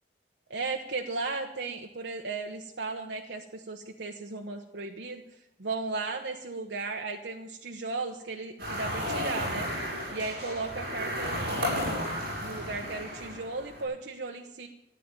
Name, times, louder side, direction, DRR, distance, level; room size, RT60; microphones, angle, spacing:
voice 1, 0.5-5.2 5.6-9.7 10.1-14.7, right 3 dB, 80° right, 2 dB, 1.1 m, -36 dB
sound 1, 8.6-13.8, equal, 55° right, 7.4 m, -33 dB
14.5 x 9.4 x 9.1 m, 0.87 s
head